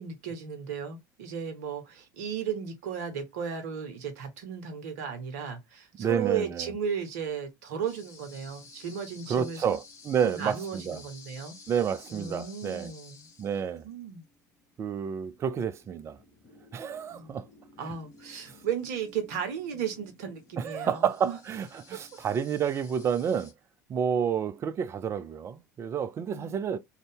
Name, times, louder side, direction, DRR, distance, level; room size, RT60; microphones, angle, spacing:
voice 1, 0.0-9.6 10.2-11.6 12.1-13.3 13.8-14.2 17.1-17.3 17.8-21.4 21.9-22.0 26.2-26.6, right 7 dB, 60° right, 0.7 m, -35 dB
voice 2, 6.0-6.7 9.3-11.0 11.7-12.9 13.4-13.8 14.8-16.2 16.7-17.5 20.6-23.5 23.9-26.8, right 7 dB, 30° right, 0.3 m, -29 dB
sound 1, 7.8-23.5, left 3 dB, 35° left, 1.1 m, -53 dB
2.6 x 2.2 x 3.4 m
figure-of-eight pair, 65°, 10 cm